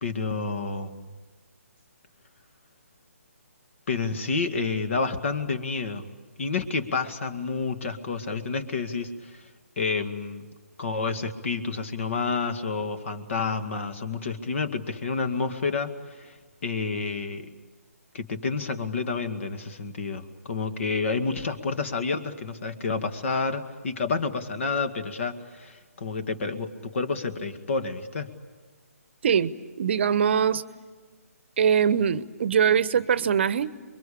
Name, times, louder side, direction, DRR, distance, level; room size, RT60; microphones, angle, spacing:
voice 1, 0.0-1.1 3.9-6.1 6.4-9.4 9.8-10.4 10.8-15.9 16.2-16.3 16.6-17.5 18.1-28.3, left 4 dB, 55° left, 8 dB, 2.2 m, -29 dB
voice 2, 29.2-30.6 31.6-33.8, right 7 dB, 50° right, 16 dB, 0.9 m, -22 dB
28.0 x 23.0 x 8.6 m, 1.4 s
figure-of-eight pair, 150°, 8 cm